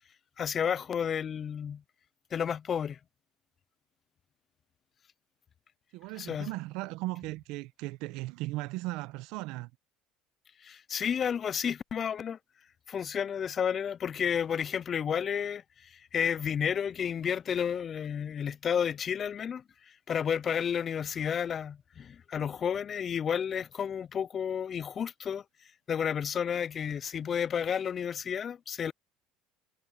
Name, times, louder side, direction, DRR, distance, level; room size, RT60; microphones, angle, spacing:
voice 1, 0.4-1.8 2.3-3.0 6.2-6.5 10.6-12.4 12.9-25.4 25.9-28.9, left 8 dB, 35° left, 0.3 m, -31 dB
voice 2, 5.9-9.7, right 19 dB, 70° right, 0.8 m, -37 dB
cardioid pair, 125°, 0 cm